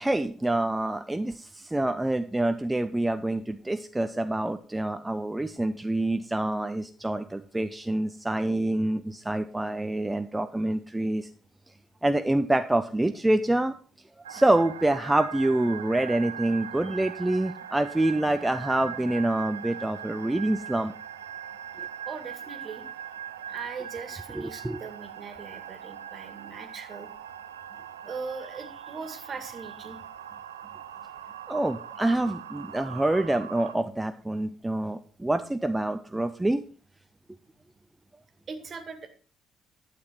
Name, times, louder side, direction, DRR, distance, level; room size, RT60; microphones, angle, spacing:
voice 1, 0.0-11.3 12.0-13.7 14.3-20.9 21.8-21.9 24.3-24.8 31.5-36.6, right 1 dB, 10° right, 9 dB, 0.6 m, -26 dB
sound 1, 14.2-33.7, right 9 dB, 80° right, 0.4 m, -41 dB
voice 2, 22.1-22.8 23.5-27.1 28.1-30.0 38.5-39.1, right 5 dB, 40° right, 8 dB, 2.0 m, -40 dB
12.0 x 7.8 x 4.5 m, 0.41 s
figure-of-eight pair, 45°, 0 cm